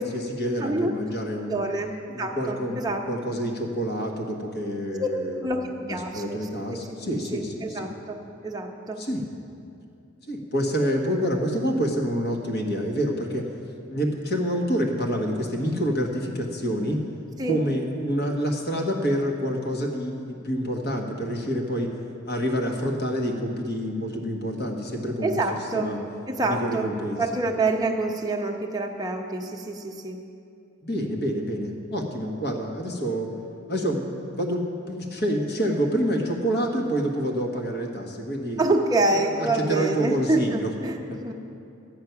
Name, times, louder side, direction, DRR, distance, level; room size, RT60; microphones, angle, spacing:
voice 1, 0.0-1.6 2.1-2.8 3.1-5.5 5.8-7.8 9.0-9.2 10.3-13.5 13.9-17.0 17.4-21.9 22.2-25.4 25.7-26.0 26.4-27.2 30.8-33.3 33.7-38.6 39.1-40.7 41.1-41.2, equal, 50° left, 1 dB, 1.4 m, -27 dB
voice 2, 0.6-1.1 1.5-1.9 2.2-3.0 5.0-5.1 5.4-6.5 7.3-8.2 8.4-9.0 17.4-17.6 25.2-25.9 26.3-30.2 38.6-41.3, right 2 dB, 20° right, 1 dB, 0.9 m, -27 dB
12.5 x 9.4 x 5.8 m, 2.6 s
head